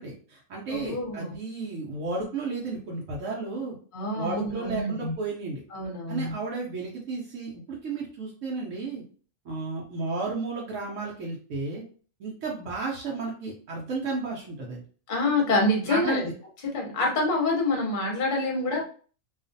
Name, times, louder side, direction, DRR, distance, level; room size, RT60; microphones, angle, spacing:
voice 1, 0.0-3.7 4.1-5.6 6.1-9.0 9.4-11.8 12.2-14.8 15.8-16.3, right 3 dB, 70° right, -2 dB, 0.9 m, -33 dB
voice 2, 0.7-1.4 3.9-5.1 5.7-6.3 15.1-16.2 16.7-18.8, left 2 dB, 45° left, -1 dB, 0.8 m, -26 dB
2.4 x 2.3 x 2.5 m, 0.41 s
omnidirectional pair, 1.4 m